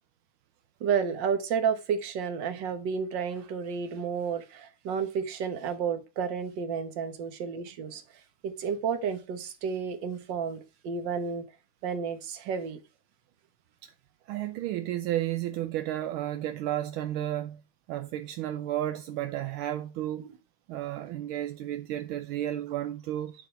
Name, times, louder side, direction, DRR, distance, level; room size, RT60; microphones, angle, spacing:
voice 1, 0.8-11.5 11.8-12.8 20.2-20.4, right 6 dB, 60° right, 1.7 m, -31 dB
voice 2, 14.3-17.6 17.9-20.3 20.7-23.3, right 13 dB, 80° right, 1.4 m, -32 dB
9.2 x 4.2 x 4.6 m
omnidirectional pair, 2.3 m